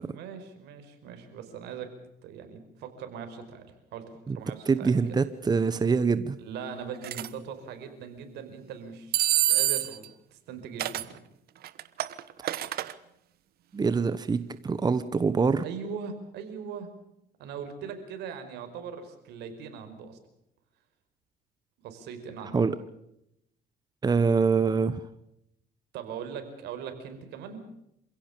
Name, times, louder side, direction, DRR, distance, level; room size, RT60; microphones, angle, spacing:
voice 1, 0.0-1.9 2.2-4.9 6.4-11.1 15.6-16.9 17.4-20.2 21.8-22.6 25.9-27.6, right 6 dB, 80° right, 8 dB, 5.0 m, -40 dB
voice 2, 4.7-6.4 13.7-15.6 22.5-22.7 24.0-25.0, right 5 dB, 25° right, 13 dB, 1.2 m, -24 dB
sound 1, 7.0-7.3 9.1-10.1 10.8-11.1 11.6-12.9, right 12 dB, 65° right, 1.3 m, -26 dB
28.0 x 16.5 x 7.0 m, 0.81 s
cardioid pair, 110°, 17 cm